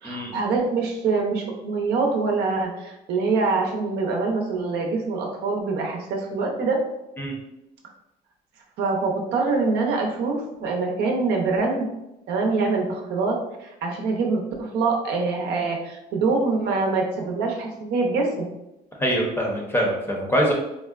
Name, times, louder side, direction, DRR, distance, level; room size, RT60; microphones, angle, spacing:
voice 1, 0.0-6.8 8.8-11.9 12.3-18.5, right 3 dB, 80° right, 1 dB, 0.6 m, -24 dB
voice 2, 19.0-20.5, equal, 15° left, -1 dB, 0.7 m, -23 dB
3.6 x 2.1 x 2.4 m, 0.92 s
cardioid pair, 110°, 17 cm